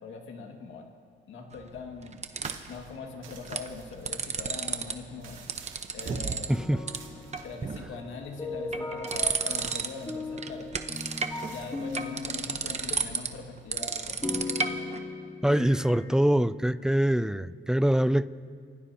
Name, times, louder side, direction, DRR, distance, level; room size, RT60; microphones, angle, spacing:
voice 1, 0.0-0.9 1.3-2.2 2.7-5.4 5.9-6.6 7.4-10.7 11.5-14.2, left 5 dB, 75° left, 2 dB, 2.1 m, -41 dB
sound 1, 1.5-2.8 3.3-3.7 3.9-4.9 5.2-6.5 6.9-7.0 7.3-8.0 8.5-10.1 10.4-15.0, right 5 dB, 35° right, 1.0 m, -32 dB
sound 2, 2.4-14.8, right 5 dB, 75° right, 2.3 m, -53 dB
sound 3, 6.5-7.9 8.2-13.0 13.4-13.5 13.8-16.2, left 3 dB, 15° left, 1.7 m, -38 dB
voice 2, 6.5-6.8 15.4-18.3, right 1 dB, 5° right, 16 dB, 0.4 m, -24 dB
27.5 x 16.5 x 2.9 m, 2.1 s
cardioid pair, 90°, 20 cm